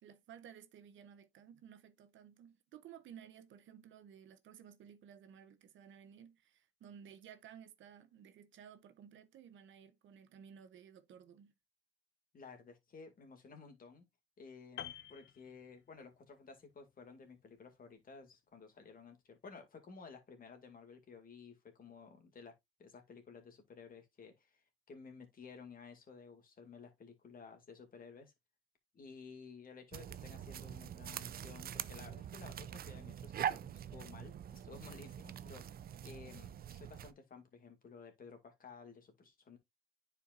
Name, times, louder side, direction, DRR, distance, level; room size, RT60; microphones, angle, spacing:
voice 1, 0.0-11.5, right 8 dB, 75° right, 0.8 m, -56 dB
voice 2, 12.3-14.1 14.4-22.5 22.8-28.3 28.9-39.6, left 5 dB, 45° left, 2.1 m, -54 dB
Piano, 14.8-16.2 16.5-16.7, left 11 dB, 60° left, 0.6 m, -49 dB
sound 1, 29.9-37.1, right 9 dB, 50° right, 0.5 m, -44 dB
10.0 x 4.5 x 2.5 m
cardioid pair, 90°, 20 cm